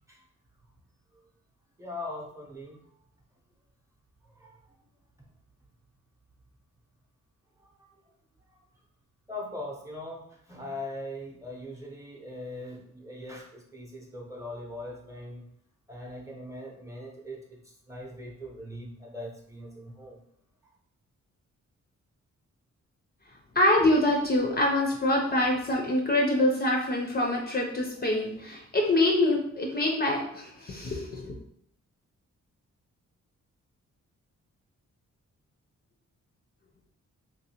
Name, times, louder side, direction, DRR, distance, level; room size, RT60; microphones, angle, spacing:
voice 1, 1.8-2.8 4.3-4.6 7.6-7.9 8.5-8.6 9.3-15.5 15.9-20.2, left 1 dB, 10° right, -2 dB, 0.7 m, -41 dB
voice 2, 23.5-31.3, left 1 dB, 30° left, 0 dB, 0.5 m, -25 dB
3.7 x 2.7 x 2.8 m, 0.70 s
wide cardioid pair, 130°, 30 cm